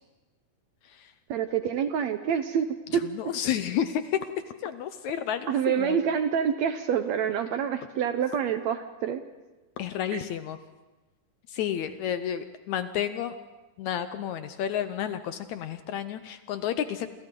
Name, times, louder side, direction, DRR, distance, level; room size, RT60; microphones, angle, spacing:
voice 1, 1.3-2.7 2.9-3.0 5.5-9.2 10.1-10.2, right 8 dB, 70° right, 8 dB, 1.8 m, -27 dB
voice 2, 2.9-4.2 4.6-6.0 9.8-10.6 11.5-13.4 13.8-17.1, left 9 dB, 75° left, 10 dB, 1.8 m, -31 dB
28.0 x 27.0 x 3.8 m, 1.2 s
omnidirectional pair, 3.9 m